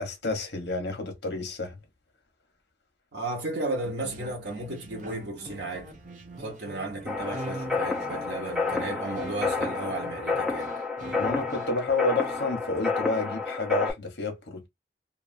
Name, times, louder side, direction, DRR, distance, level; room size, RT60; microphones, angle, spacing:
voice 1, 0.0-1.8 11.1-14.7, left 3 dB, 70° left, 1.1 m, -30 dB
voice 2, 3.1-5.9 6.4-10.8, right 2 dB, 75° right, 1.2 m, -34 dB
sound 1, 3.8-11.7, right 1 dB, 45° right, 0.7 m, -43 dB
sound 2, 7.1-13.9, left 4 dB, 5° right, 0.7 m, -30 dB
2.8 x 2.7 x 2.6 m
head